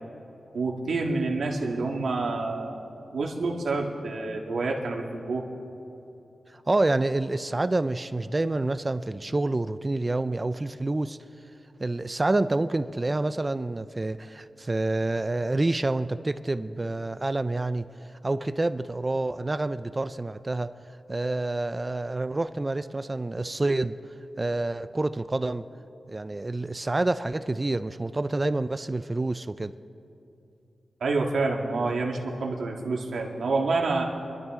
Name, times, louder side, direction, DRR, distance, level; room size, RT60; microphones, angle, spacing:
voice 1, 0.5-5.4 31.0-34.0, right 3 dB, 80° right, 1.8 m, -28 dB
voice 2, 6.5-11.2 11.8-17.9 18.2-20.7 21.1-24.0 24.4-25.6 26.1-29.7, right 2 dB, 25° right, 0.3 m, -28 dB
26.0 x 12.0 x 3.6 m
wide cardioid pair, 135°, 0 cm